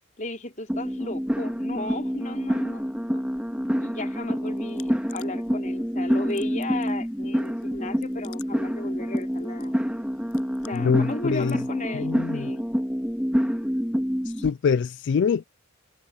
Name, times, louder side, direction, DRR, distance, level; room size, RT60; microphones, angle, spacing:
voice 1, 0.2-3.2 3.8-9.8 10.7-12.7, left 2 dB, 35° left, 4.8 m, -35 dB
sound 1, 0.7-14.5, equal, 5° right, 1.9 m, -27 dB
sound 2, 4.4-11.7, left 12 dB, 90° left, 7.1 m, -54 dB
voice 2, 10.7-11.6 11.9-12.5 14.3-15.4, left 6 dB, 55° left, 0.3 m, -24 dB
head